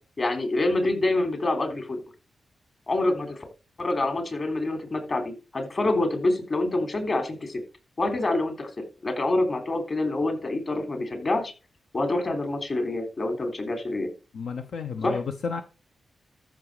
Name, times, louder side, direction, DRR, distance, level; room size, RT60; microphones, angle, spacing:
voice 1, 0.2-2.0 2.9-3.4 3.8-7.6 8.0-8.7 9.0-11.5 11.9-14.1 15.0-15.2, left 2 dB, 40° left, 6 dB, 3.5 m, -26 dB
voice 2, 14.3-15.6, left 5 dB, 80° left, 7 dB, 1.0 m, -32 dB
13.5 x 6.1 x 5.0 m, 0.33 s
cardioid pair, 90°, 0 cm